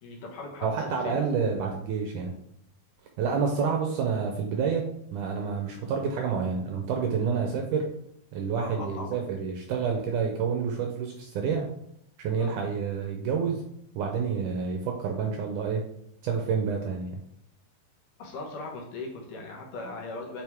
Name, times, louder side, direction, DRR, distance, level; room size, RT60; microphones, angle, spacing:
voice 1, 0.0-1.2 8.6-9.2 12.4-12.5 18.2-20.4, left 2 dB, 70° left, 0 dB, 2.4 m, -39 dB
voice 2, 0.6-2.3 3.2-7.9 8.3-11.7 12.2-13.6 14.0-15.8 16.2-17.2, right 6 dB, 80° right, 2 dB, 1.9 m, -28 dB
7.8 x 4.9 x 3.5 m, 0.73 s
omnidirectional pair, 4.3 m